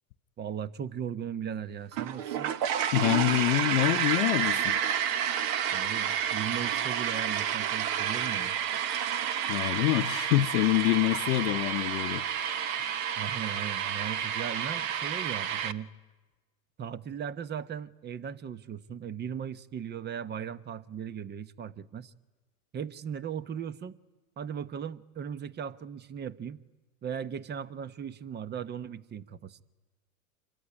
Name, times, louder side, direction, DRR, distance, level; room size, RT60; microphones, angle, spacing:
voice 1, 0.4-2.5 5.7-8.6 13.2-15.9 16.8-22.1 22.7-23.9 24.4-26.6 27.0-29.6, right 8 dB, 25° right, 0.9 m, -38 dB
sound 1, 1.9-15.7, right 9 dB, 45° right, 1.3 m, -30 dB
voice 2, 2.9-4.8 9.5-12.9, left 17 dB, 60° left, 0.9 m, -26 dB
26.5 x 22.0 x 9.9 m
hypercardioid pair, 110°, 44 cm